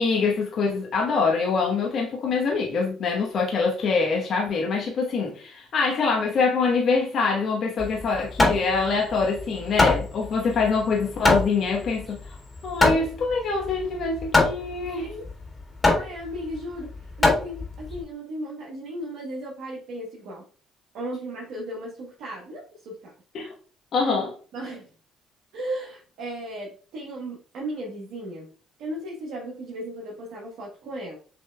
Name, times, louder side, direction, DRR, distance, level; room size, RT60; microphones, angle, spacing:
voice 1, 0.0-12.3 12.6-15.1 23.3-23.5 23.9-24.3, left 4 dB, 60° left, 1.0 m, -24 dB
Hammer, 7.8-18.0, left 2 dB, 25° left, 1.8 m, -24 dB
voice 2, 15.8-20.4 20.9-23.1 24.5-24.9 25.5-28.5 28.8-31.2, right 1 dB, 75° right, 1.1 m, -35 dB
6.3 x 3.1 x 2.2 m
supercardioid pair, 70°, 0 cm